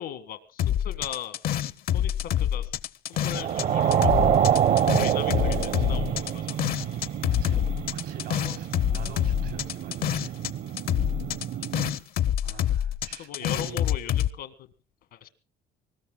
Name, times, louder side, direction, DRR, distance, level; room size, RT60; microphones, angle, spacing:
voice 1, 0.0-1.4 1.9-2.7 3.1-4.1 5.0-6.8 11.6-11.7 13.2-14.5 15.1-15.3, left 10 dB, 80° left, 9 dB, 1.5 m, -38 dB
sound 1, 0.6-3.6 3.9-10.5 10.8-14.3, left 11 dB, 60° left, 0.7 m, -26 dB
sound 2, 3.2-12.0, right 9 dB, 60° right, 1.0 m, -27 dB
voice 2, 7.3-7.6 7.9-10.4 12.4-13.8, right 8 dB, 90° right, 5 dB, 4.7 m, -45 dB
24.0 x 20.0 x 2.4 m, 0.32 s
cardioid pair, 110°, 17 cm